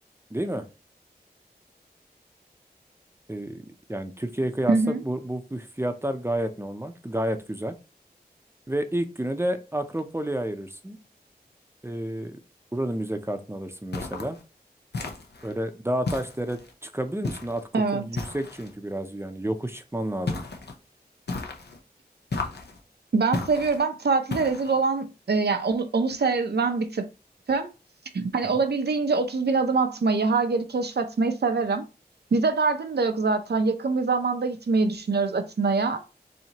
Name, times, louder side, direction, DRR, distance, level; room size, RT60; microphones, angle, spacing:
voice 1, 0.3-0.7 3.3-7.8 8.7-11.0 11.8-12.4 12.7-14.4 15.4-20.4 28.4-28.6, right 1 dB, 15° right, 0.6 m, -30 dB
voice 2, 4.7-5.0 17.7-18.0 23.1-27.0 27.5-27.7 28.1-31.9 32.3-36.0, right 4 dB, 85° right, 0.6 m, -24 dB
sound 1, 13.9-14.4 14.9-15.5 16.1-16.7 17.2-17.6 18.2-18.7 20.3-20.8 21.3-21.8 22.3-22.8 23.3-23.8 24.3-24.8, left 3 dB, 90° left, 0.7 m, -33 dB
4.3 x 2.8 x 2.8 m
wide cardioid pair, 55°, 17 cm